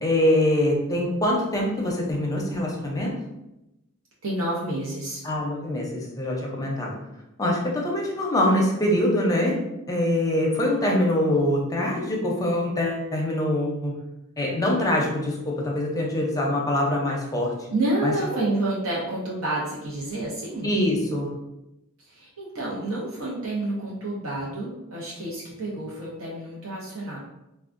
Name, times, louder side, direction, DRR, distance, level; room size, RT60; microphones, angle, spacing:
voice 1, 0.0-3.1 5.2-6.9 7.4-9.6 9.9-13.9 14.4-17.7 18.0-18.1 20.6-21.3, left 1 dB, 15° left, -2 dB, 0.6 m, -24 dB
voice 2, 4.2-5.2 17.7-20.7 22.1-27.2, right 2 dB, 80° right, -6 dB, 0.8 m, -29 dB
3.5 x 2.3 x 2.5 m, 0.92 s
head